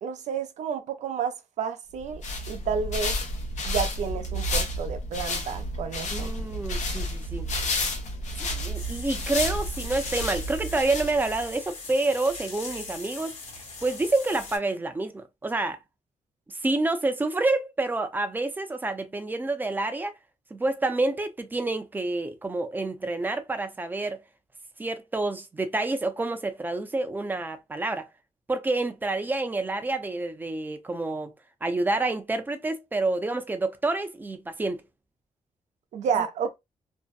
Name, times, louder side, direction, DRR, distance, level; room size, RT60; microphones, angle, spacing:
voice 1, 0.0-2.2 2.5-3.2 3.7-6.4 35.9-36.6, right 6 dB, 80° right, 0.5 m, -30 dB
sound 1, 2.0-11.5, left 1 dB, 80° left, 0.7 m, -31 dB
voice 2, 6.1-7.5 8.4-13.4 13.8-15.8 16.5-20.1 20.5-24.2 24.8-28.1 28.5-31.3 31.6-34.9 36.1-36.3, right 2 dB, 15° right, 0.4 m, -28 dB
sound 2, 8.7-14.6, left 3 dB, 60° left, 1.1 m, -40 dB
2.6 x 2.1 x 2.3 m
cardioid pair, 125°, 12 cm